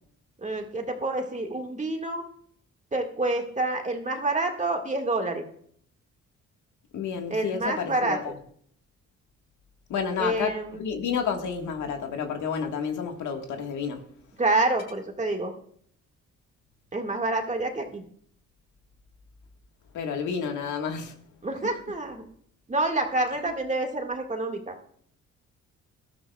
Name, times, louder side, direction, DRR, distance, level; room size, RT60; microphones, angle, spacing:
voice 1, 0.4-2.2 2.9-5.4 7.3-8.2 10.2-10.8 14.4-15.5 16.9-18.0 21.4-22.3 22.7-24.8, right 2 dB, 25° right, 1.9 m, -27 dB
voice 2, 6.9-8.4 9.9-14.0 19.9-21.2, left 6 dB, 75° left, 1.7 m, -30 dB
18.5 x 12.5 x 2.4 m
cardioid pair, 90°, 30 cm